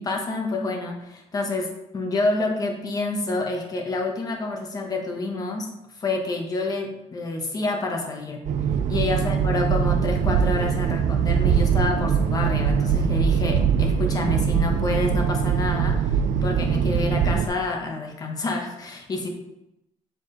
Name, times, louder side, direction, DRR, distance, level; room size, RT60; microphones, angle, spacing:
voice 1, 0.0-5.7 6.0-8.4 8.9-16.0 16.4-19.3, left 2 dB, 30° left, 2 dB, 1.1 m, -28 dB
sound 1, 8.4-17.5, right 7 dB, 70° right, 0.5 m, -22 dB
7.8 x 4.7 x 3.9 m, 0.88 s
cardioid pair, 175°, 13 cm